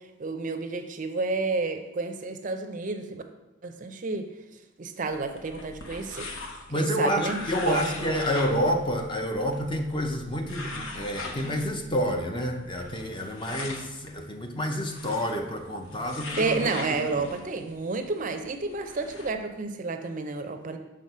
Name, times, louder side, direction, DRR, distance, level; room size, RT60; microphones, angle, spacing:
voice 1, 0.2-3.2 3.6-4.2 4.8-6.3 6.7-8.3 16.4-20.8, right 3 dB, 40° right, 7 dB, 0.5 m, -30 dB
sound 1, 5.1-19.3, left 2 dB, 85° left, 0.9 m, -41 dB
voice 2, 6.7-16.6 17.2-17.3, equal, 25° left, 4 dB, 0.6 m, -29 dB
6.3 x 3.8 x 5.5 m, 1.0 s
head